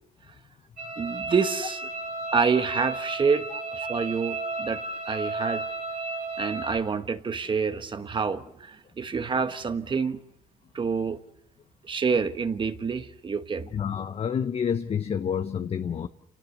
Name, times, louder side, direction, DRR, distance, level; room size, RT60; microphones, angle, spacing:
sound 1, 0.8-6.8, right 2 dB, 60° right, 3.9 m, -33 dB
voice 1, 1.0-1.8 2.3-5.6 6.4-10.2 10.7-11.2 11.9-13.7, right 5 dB, 30° right, 10 dB, 1.2 m, -27 dB
voice 2, 13.7-16.1, left 7 dB, 35° left, 9 dB, 0.8 m, -28 dB
27.5 x 18.5 x 7.1 m, 0.79 s
cardioid pair, 110°, 17 cm